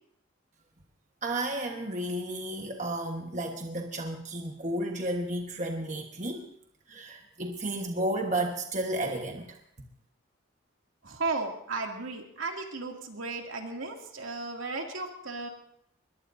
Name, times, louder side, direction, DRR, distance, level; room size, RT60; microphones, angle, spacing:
voice 1, 1.2-6.4 6.9-9.6, right 1 dB, 35° right, 2 dB, 1.3 m, -32 dB
voice 2, 11.0-15.5, right 3 dB, 80° right, 1 dB, 2.6 m, -35 dB
22.0 x 21.5 x 2.7 m, 0.70 s
head